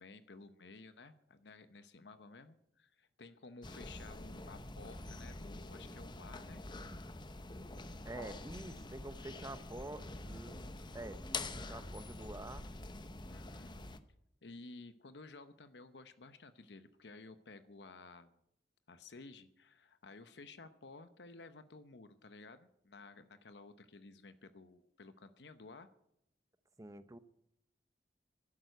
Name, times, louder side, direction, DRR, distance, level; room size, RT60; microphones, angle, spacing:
voice 1, 0.0-6.6 13.3-13.8 14.4-18.4 18.9-25.9, left 3 dB, 70° left, 11 dB, 0.9 m, -54 dB
sound 1, 3.6-14.0, left 2 dB, 25° left, 0.8 m, -46 dB
voice 2, 8.0-10.6 10.9-12.6 26.8-27.2, right 2 dB, 20° right, 12 dB, 0.8 m, -47 dB
12.5 x 11.0 x 8.1 m, 0.77 s
head